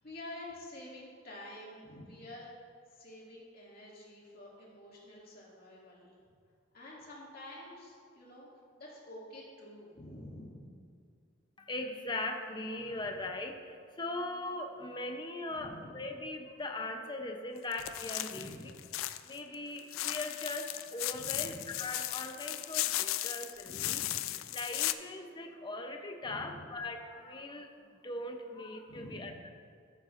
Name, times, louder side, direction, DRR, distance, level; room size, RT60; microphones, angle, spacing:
voice 1, 0.0-2.5 2.9-6.1 6.7-8.5 8.8-10.7 15.5-16.0 18.3-18.9 21.1-21.6 23.7-24.3 26.2-26.6 28.9-29.5, left 1 dB, 45° left, -5 dB, 2.3 m, -49 dB
voice 2, 11.6-18.5 19.2-24.0 24.5-27.7 28.0-29.5, left 2 dB, 20° left, 4 dB, 0.6 m, -40 dB
sound 1, 17.7-19.4 19.8-24.9, left 15 dB, 80° left, 0.3 m, -36 dB
13.5 x 7.9 x 2.5 m, 2.2 s
head